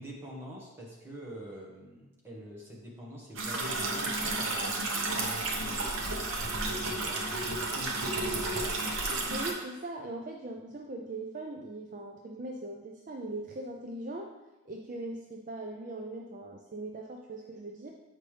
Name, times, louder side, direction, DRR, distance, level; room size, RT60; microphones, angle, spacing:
voice 1, 0.0-4.8 5.1-6.1 6.7-8.8, equal, 10° right, -4 dB, 1.4 m, -45 dB
sound 1, 3.4-9.5, right 2 dB, 70° right, 1.0 m, -32 dB
voice 2, 9.3-14.3 14.7-17.9, right 2 dB, 35° right, 1 dB, 0.4 m, -40 dB
8.1 x 5.4 x 3.3 m, 1.1 s
head